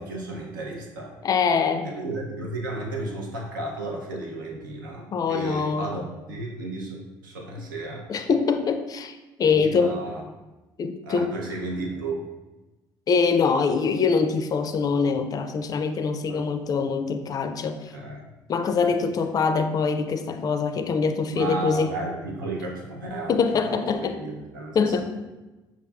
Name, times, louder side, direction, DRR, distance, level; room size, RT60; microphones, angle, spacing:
voice 1, 0.0-1.2 1.8-8.1 9.5-10.3 11.0-12.3 16.3-16.4 17.9-18.3 18.8-18.9 21.3-23.4 23.7-25.0, right 2 dB, 90° right, 0 dB, 0.5 m, -33 dB
voice 2, 1.2-1.9 5.1-5.9 8.1-10.0 10.8-11.3 13.1-17.9 18.5-21.9 23.3-24.2 24.7-25.0, left 5 dB, 35° left, 8 dB, 0.4 m, -24 dB
5.5 x 2.4 x 2.3 m, 1.1 s
hypercardioid pair, 55°, 11 cm